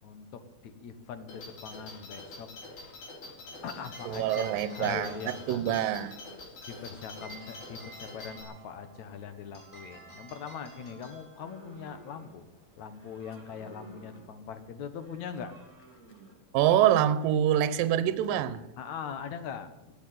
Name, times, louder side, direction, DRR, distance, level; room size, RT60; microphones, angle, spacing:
voice 1, 0.0-2.5 3.6-5.8 6.7-12.5 12.8-15.5 18.8-19.9, left 7 dB, 65° left, 2.2 m, -41 dB
sound 1, 1.3-8.4, left 2 dB, 90° left, 5.4 m, -46 dB
sound 2, 3.5-13.9, right 3 dB, 10° left, 5.6 m, -53 dB
voice 2, 4.1-6.1 16.5-18.6, right 11 dB, 80° right, 2.5 m, -25 dB
sound 3, 11.4-12.6 12.9-14.5 14.9-17.3, right 3 dB, 25° right, 2.3 m, -53 dB
16.5 x 8.8 x 9.3 m
omnidirectional pair, 4.1 m